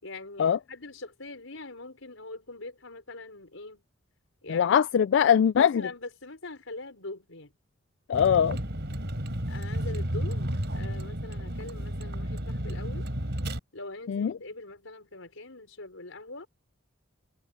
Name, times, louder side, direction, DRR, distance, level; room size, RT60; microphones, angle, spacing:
voice 1, 0.0-3.8 4.4-4.8 5.6-7.5 9.5-13.1 13.7-16.5, left 2 dB, 90° left, 4.7 m, -42 dB
voice 2, 4.5-5.8 8.1-8.6 14.1-14.3, left 8 dB, 65° left, 0.3 m, -22 dB
Vehicle, 8.1-13.6, equal, 60° right, 4.1 m, -32 dB
head